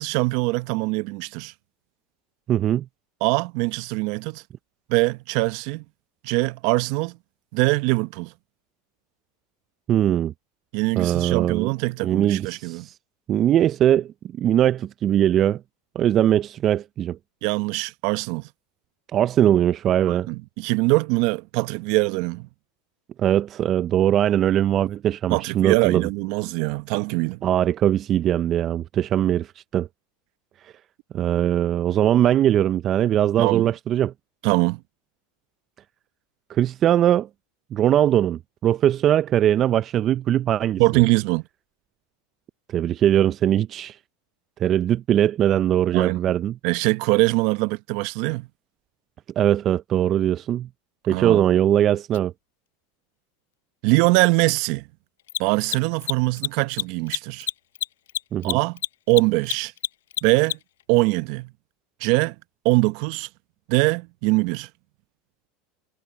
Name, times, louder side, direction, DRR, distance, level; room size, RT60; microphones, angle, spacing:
voice 1, 0.0-1.5 3.2-4.4 4.9-5.8 6.2-7.2 7.5-8.3 10.7-12.9 17.4-18.5 20.1-22.5 25.3-27.4 33.4-33.7 34.4-34.8 40.8-41.4 45.9-46.3 46.6-48.5 51.1-51.4 53.8-54.9 55.4-57.5 58.4-58.8 59.1-59.7 60.2-60.6 60.9-61.5 62.0-62.3 62.6-63.3 63.7-64.7, right 24 dB, 65° right, 0.9 m, -22 dB
voice 2, 2.5-2.8 9.9-10.3 11.0-11.7 12.0-12.9 13.3-15.6 16.0-17.2 19.1-20.3 23.2-26.1 27.4-29.9 30.6-30.7 31.1-34.1 36.5-37.3 37.7-40.8 42.7-44.0 44.6-46.6 49.4-50.7 51.1-52.3 58.3-58.6, right 11 dB, 40° right, 0.4 m, -21 dB
Mechanisms, 52.1-52.2 55.2-60.8, left 13 dB, 80° left, 0.4 m, -28 dB
hypercardioid pair, 100°, 0 cm